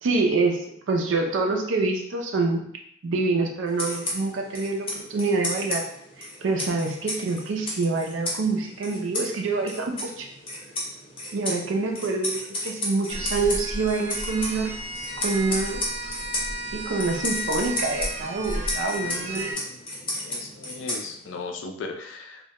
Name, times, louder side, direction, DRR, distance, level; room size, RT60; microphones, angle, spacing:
voice 1, 0.0-2.6 3.0-5.9 6.4-10.3 11.3-14.7 15.2-15.8 16.7-19.6, right 3 dB, 80° right, 2 dB, 0.4 m, -26 dB
sound 1, 3.7-21.5, left 1 dB, 30° left, 0.6 m, -34 dB
sound 2, 13.1-19.5, equal, 35° right, 0.6 m, -33 dB
voice 2, 19.0-19.8 20.2-22.5, left 4 dB, 75° left, 4 dB, 0.4 m, -38 dB
2.2 x 2.1 x 2.8 m, 0.71 s
head